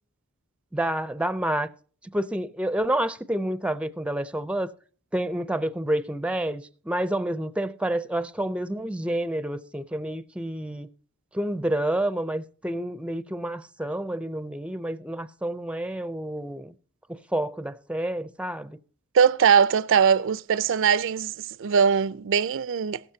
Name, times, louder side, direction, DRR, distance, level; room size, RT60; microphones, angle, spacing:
voice 1, 0.7-1.7 2.1-4.7 5.1-10.9 11.3-16.7 17.1-18.8, right 1 dB, 5° right, 0.5 m, -29 dB
voice 2, 19.1-23.0, right 7 dB, 60° right, 0.4 m, -21 dB
16.0 x 13.0 x 2.7 m
head